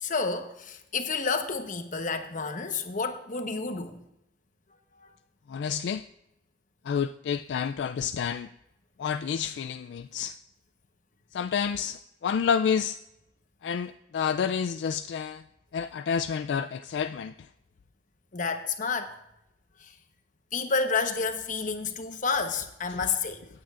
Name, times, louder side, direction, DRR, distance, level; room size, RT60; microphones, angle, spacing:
voice 1, 0.0-4.0 4.9-5.1 18.3-19.1 19.8-19.9 20.5-23.5, left 4 dB, 45° left, 1.0 m, -30 dB
voice 2, 5.5-6.0 6.8-8.5 9.0-10.4 11.3-13.0 13.6-15.4 15.7-17.5 22.9-23.0, left 7 dB, 70° left, 0.3 m, -29 dB
17.5 x 8.9 x 2.5 m
head